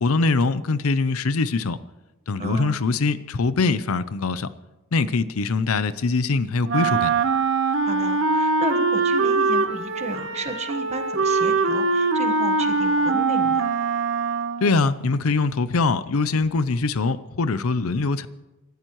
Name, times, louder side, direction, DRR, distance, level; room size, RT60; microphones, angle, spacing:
voice 1, 0.0-1.8 2.3-4.5 4.9-7.1 14.6-18.3, left 3 dB, 90° left, 15 dB, 0.6 m, -23 dB
voice 2, 2.4-2.8 7.8-13.7, right 2 dB, 30° right, 7 dB, 1.3 m, -33 dB
Wind instrument woodwind instrument, 6.7-14.8, right 4 dB, 60° right, 1.1 m, -22 dB
29.5 x 13.5 x 3.1 m, 1.1 s
head